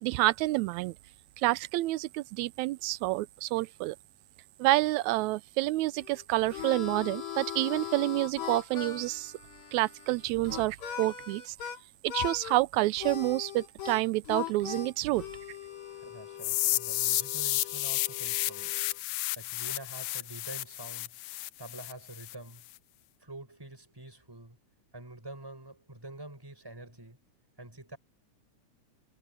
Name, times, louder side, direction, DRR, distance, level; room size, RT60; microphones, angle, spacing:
voice 1, 0.0-1.0 1.4-4.0 4.6-9.3 9.7-11.6 12.0-15.2, right 19 dB, 80° right, 1.8 m, -28 dB
Harmonica, 6.0-11.8 12.1-12.6 13.0-19.0, left 10 dB, 70° left, 3.5 m, -40 dB
voice 2, 15.9-18.9 19.4-21.1 21.6-22.7 23.2-24.6 24.9-27.2 27.6-28.0, right 2 dB, 5° right, 6.0 m, -46 dB
sound 1, 16.4-22.3, left 18 dB, 85° left, 1.4 m, -32 dB
omnidirectional pair, 3.4 m